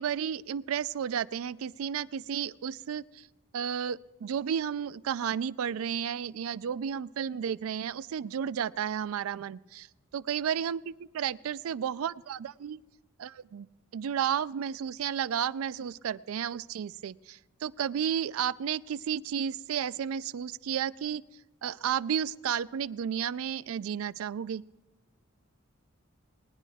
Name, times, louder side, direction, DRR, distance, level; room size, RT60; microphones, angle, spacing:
voice 1, 0.0-3.3 3.5-9.9 10.1-12.8 13.2-13.7 13.9-21.2 21.6-24.6, right 8 dB, 80° right, 17 dB, 0.3 m, -32 dB
19.0 x 10.0 x 3.5 m, 1.1 s
head